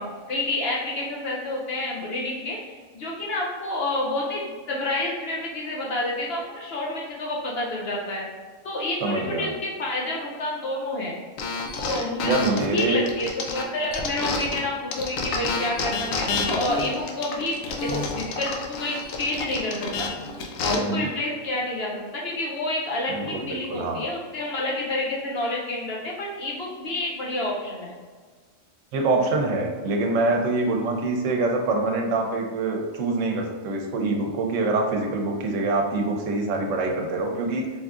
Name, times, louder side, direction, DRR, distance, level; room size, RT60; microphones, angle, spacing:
voice 1, 0.0-2.6 2.9-8.2 8.6-11.2 11.7-20.1 20.6-27.9, left 2 dB, 60° left, -3 dB, 0.8 m, -29 dB
voice 2, 9.0-9.5 12.2-13.1 20.7-21.1 23.1-24.0 28.9-37.7, right 2 dB, 75° right, 2 dB, 0.9 m, -25 dB
sound 1, 11.4-14.6 14.9-20.8, left 4 dB, 85° left, 1.0 m, -29 dB
4.0 x 3.6 x 2.4 m, 1.5 s
omnidirectional pair, 1.3 m